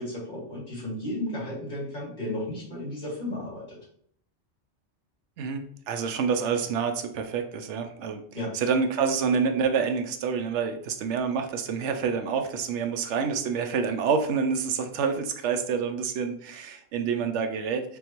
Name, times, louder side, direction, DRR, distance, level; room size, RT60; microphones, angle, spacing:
voice 1, 0.0-3.8 8.3-8.5, left 1 dB, 40° left, -6 dB, 2.0 m, -34 dB
voice 2, 5.4-8.2 8.5-18.0, right 6 dB, 85° right, 7 dB, 0.9 m, -27 dB
3.8 x 3.5 x 3.0 m, 0.64 s
omnidirectional pair, 1.2 m